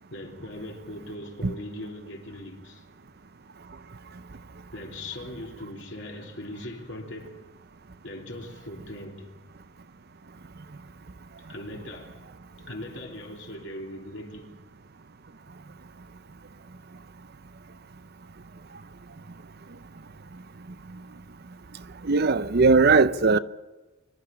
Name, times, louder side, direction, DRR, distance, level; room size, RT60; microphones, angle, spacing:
voice 1, 0.1-2.8 4.7-7.4 8.0-9.3 11.5-12.3 12.6-14.5, left 1 dB, 65° left, 3.2 m, -39 dB
voice 2, 22.0-23.4, right 4 dB, 50° right, 0.7 m, -19 dB
24.0 x 12.5 x 9.8 m
head